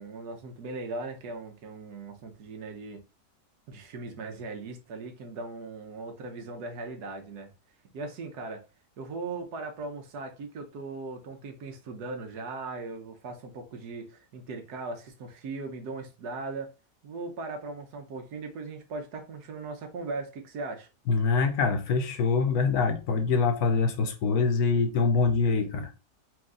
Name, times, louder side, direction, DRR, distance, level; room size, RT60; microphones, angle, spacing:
voice 1, 0.0-3.0 3.7-7.5 7.9-8.6 9.0-16.7 17.0-20.9, right 3 dB, 70° right, 1.4 m, -38 dB
voice 2, 21.1-25.9, left 4 dB, 70° left, 1.1 m, -24 dB
4.5 x 2.6 x 3.7 m
omnidirectional pair, 1.8 m